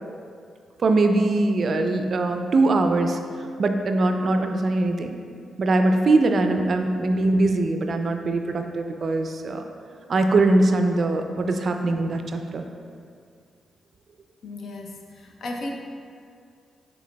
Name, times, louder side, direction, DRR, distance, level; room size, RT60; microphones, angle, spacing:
voice 1, 0.8-3.2 3.6-5.1 5.6-9.6 10.1-12.6, right 2 dB, 55° right, 5 dB, 0.3 m, -21 dB
voice 2, 14.4-15.7, left 2 dB, 70° left, 1 dB, 0.5 m, -35 dB
6.2 x 3.3 x 2.2 m, 2.2 s
supercardioid pair, 50°, 0 cm